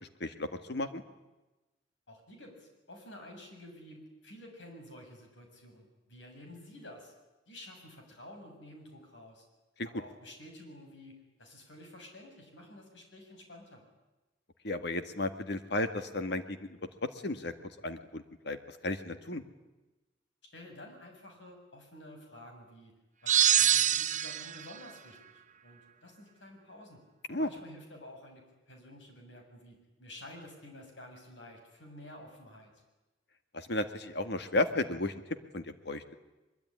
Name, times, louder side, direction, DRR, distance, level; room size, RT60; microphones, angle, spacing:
voice 1, 0.2-1.0 14.6-16.7 17.0-17.5 17.8-19.4 27.3-27.5 33.5-35.2 35.5-36.1, left 2 dB, 65° left, 9 dB, 1.8 m, -34 dB
voice 2, 2.1-7.1 7.5-9.5 9.8-13.8 20.5-22.9 23.2-27.0 27.4-32.7, left 1 dB, 80° left, 3 dB, 7.1 m, -51 dB
sound 1, 23.3-24.6, right 10 dB, 40° right, 0.8 m, -25 dB
23.0 x 23.0 x 10.0 m, 1.1 s
head